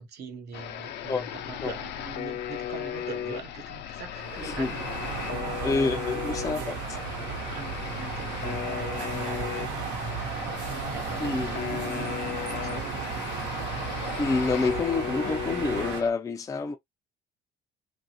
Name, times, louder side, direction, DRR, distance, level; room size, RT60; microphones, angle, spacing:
voice 1, 0.0-4.8 5.3-6.0 6.4-13.2, right 6 dB, 60° right, 1.0 m, -43 dB
sound 1, 0.5-16.1, left 10 dB, 65° left, 0.5 m, -36 dB
sound 2, 4.1-16.0, right 6 dB, 80° right, 1.0 m, -34 dB
voice 2, 4.4-4.7 5.6-6.8 11.2-11.6 14.2-16.8, left 4 dB, 20° left, 0.4 m, -28 dB
2.9 x 2.5 x 2.8 m
supercardioid pair, 90°, 19 cm